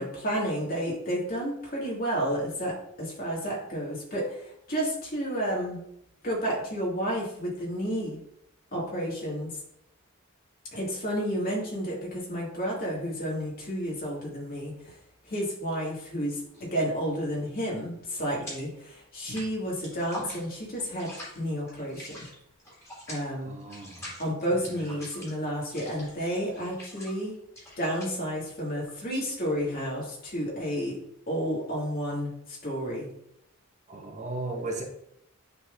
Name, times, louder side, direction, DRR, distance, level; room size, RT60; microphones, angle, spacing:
voice 1, 0.0-5.8 6.2-8.2 8.7-9.5 10.7-15.0 15.2-21.1 21.4-22.2 23.1-23.6 24.2-27.3 27.8-31.0 31.3-33.1, equal, 45° left, -4 dB, 2.3 m, -31 dB
sound 1, 16.4-16.8 17.1-18.8 19.1-30.6, equal, 15° left, 2.5 m, -45 dB
voice 2, 23.5-24.1 24.5-24.9 33.9-34.8, right 2 dB, 35° right, 1 dB, 0.9 m, -36 dB
10.0 x 4.0 x 2.7 m, 0.75 s
head